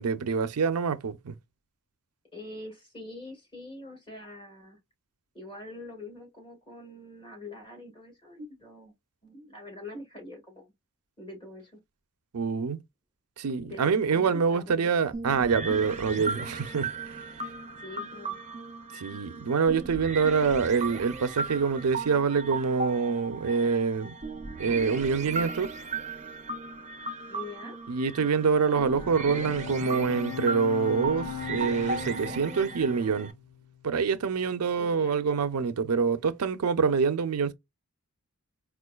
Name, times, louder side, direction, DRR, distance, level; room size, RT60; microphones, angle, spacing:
voice 1, 0.0-1.4 12.3-12.8 13.4-16.9 18.9-24.1 24.6-25.7 27.9-33.3 33.8-37.5, right 5 dB, 85° right, 0.5 m, -26 dB
voice 2, 2.3-4.8 5.3-8.9 9.2-10.7 11.2-11.8 13.6-14.9 17.8-18.4 27.3-27.8 34.7-35.3, left 2 dB, 25° left, 2.0 m, -44 dB
sound 1, 15.1-33.3, right 4 dB, 30° right, 0.6 m, -36 dB
Bowed string instrument, 28.5-34.0, left 9 dB, 85° left, 0.4 m, -40 dB
4.4 x 2.4 x 2.3 m
head